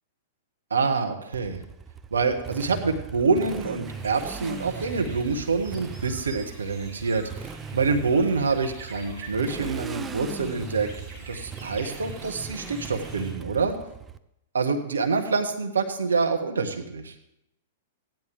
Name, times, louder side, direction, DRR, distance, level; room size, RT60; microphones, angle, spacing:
voice 1, 0.7-1.6 2.1-10.9 11.3-13.7 14.5-17.1, right 4 dB, 85° right, 5 dB, 1.5 m, -26 dB
Motorcycle, 1.3-14.2, right 6 dB, 20° right, 0.6 m, -39 dB
sound 1, 3.8-13.3, right 3 dB, 35° right, 3.0 m, -46 dB
15.5 x 10.5 x 3.4 m, 0.81 s
hypercardioid pair, 110°, 0 cm